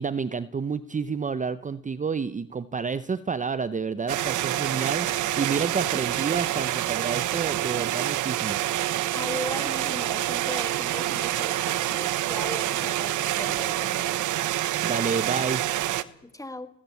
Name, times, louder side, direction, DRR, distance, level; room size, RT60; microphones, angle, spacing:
voice 1, 0.0-5.1 5.4-8.6 14.8-15.6, right 5 dB, 25° right, 15 dB, 0.7 m, -29 dB
sound 1, 4.1-16.0, right 14 dB, 80° right, 1.1 m, -27 dB
voice 2, 9.1-14.1 16.2-16.7, left 2 dB, 10° left, 11 dB, 1.9 m, -38 dB
19.5 x 16.5 x 8.3 m, 0.77 s
cardioid pair, 90°, 30 cm